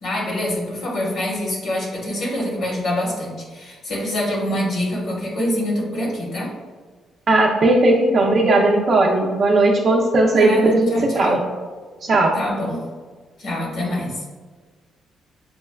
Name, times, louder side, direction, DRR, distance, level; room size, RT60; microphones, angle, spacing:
voice 1, 0.0-6.5 10.2-11.4 12.3-12.8 13.4-14.2, left 1 dB, 70° left, -3 dB, 1.2 m, -25 dB
voice 2, 7.3-11.4 12.0-12.3, right 2 dB, 50° right, -2 dB, 0.5 m, -17 dB
6.1 x 2.2 x 2.2 m, 1.5 s
cardioid pair, 90°, 0 cm